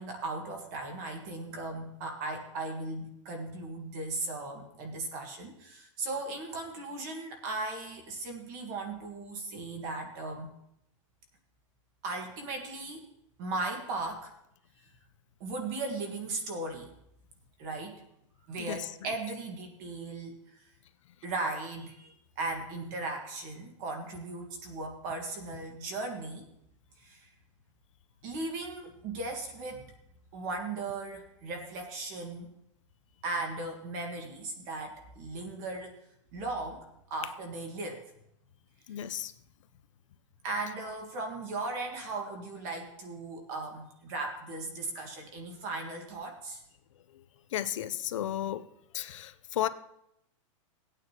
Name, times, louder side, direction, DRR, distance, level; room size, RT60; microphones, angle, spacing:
voice 1, 0.0-10.5 12.0-13.0 13.4-14.3 15.4-16.9 17.6-18.0 18.5-20.6 21.2-26.5 27.0-27.3 28.2-29.9 30.3-32.5 33.2-36.0 36.3-38.0 40.4-46.6, right 2 dB, 30° right, 4 dB, 1.6 m, -37 dB
voice 2, 38.9-39.3 47.5-48.7 48.9-49.7, left 12 dB, 65° left, 12 dB, 0.6 m, -33 dB
17.5 x 8.9 x 2.9 m, 0.78 s
supercardioid pair, 175°, 17 cm